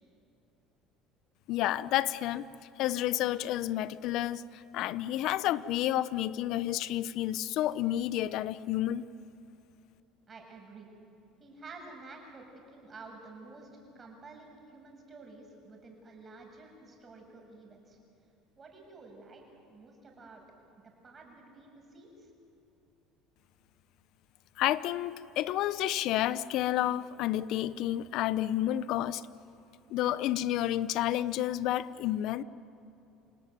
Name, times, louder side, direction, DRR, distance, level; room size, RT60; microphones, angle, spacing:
voice 1, 1.5-2.4 2.8-9.0 24.6-29.2 29.9-32.4, left 13 dB, 65° left, 17 dB, 0.9 m, -30 dB
voice 2, 10.3-10.9 11.4-18.0 18.6-19.4 19.7-20.4 20.8-22.3, right 3 dB, 30° right, 1 dB, 7.0 m, -50 dB
28.5 x 18.0 x 9.6 m, 2.8 s
supercardioid pair, 110°, 0 cm